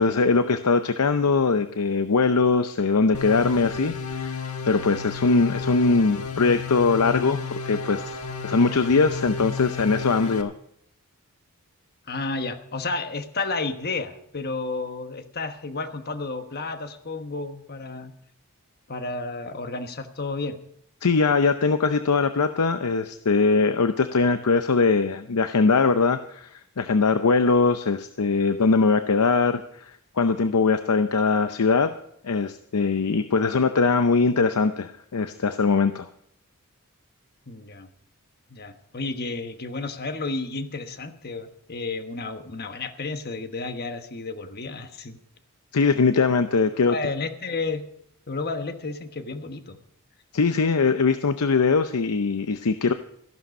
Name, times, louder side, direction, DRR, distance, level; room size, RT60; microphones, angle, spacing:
voice 1, 0.0-8.2 8.4-10.5 21.0-29.9 30.2-31.9 32.2-36.1 45.7-47.0 50.3-52.9, left 4 dB, 90° left, 10 dB, 0.7 m, -21 dB
sound 1, 3.1-10.4, left 4 dB, 70° left, 1.4 m, -32 dB
voice 2, 12.1-18.1 18.9-20.6 37.5-37.9 38.5-45.2 46.9-47.8 48.3-49.8, left 3 dB, 45° left, 8 dB, 1.3 m, -32 dB
14.0 x 11.5 x 5.3 m, 0.69 s
head